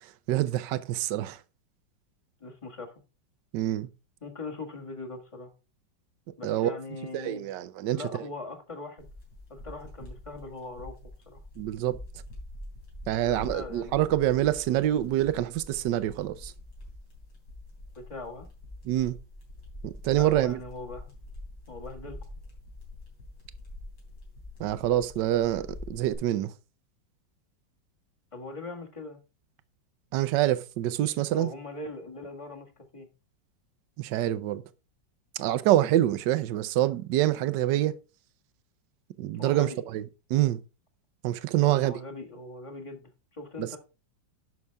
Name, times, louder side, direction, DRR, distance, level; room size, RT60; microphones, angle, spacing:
voice 1, 0.0-1.4 3.5-3.9 6.4-6.7 7.1-8.3 11.6-12.0 13.1-16.5 18.8-19.2 19.8-20.6 24.6-26.5 30.1-31.5 34.0-34.6 35.4-38.0 39.2-40.0 40.3-40.6 41.2-41.9 43.6-43.7, right 13 dB, 75° right, 1.3 m, -26 dB
voice 2, 2.4-2.9 4.2-5.5 6.4-7.5 7.9-9.1 9.5-11.0 11.3-11.4 13.1-14.2 17.9-18.5 20.1-21.1 21.7-22.2 28.3-29.2 31.3-33.1 39.4-39.8 41.6-43.8, left 3 dB, 20° left, 1.5 m, -41 dB
sound 1, 9.0-26.1, left 1 dB, 75° left, 4.0 m, -45 dB
11.0 x 5.9 x 3.4 m
omnidirectional pair, 2.0 m